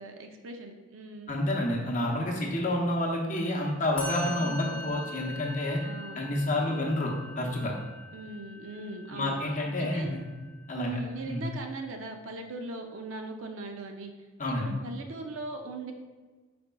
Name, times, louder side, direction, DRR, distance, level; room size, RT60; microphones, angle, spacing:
voice 1, 0.0-1.4 4.4-4.8 5.8-6.3 6.7-6.9 8.1-9.4 9.8-10.1 10.8-14.1 14.4-15.9, right 2 dB, 70° right, 4 dB, 0.5 m, -40 dB
voice 2, 1.3-5.8 6.2-7.7 9.1-10.2 10.7-10.9 11.2-11.4 14.4-14.7, left 1 dB, 35° left, 0 dB, 0.7 m, -29 dB
Musical instrument, 4.0-11.3, left 1 dB, 5° left, 0.8 m, -43 dB
5.1 x 4.2 x 2.2 m, 1.4 s
head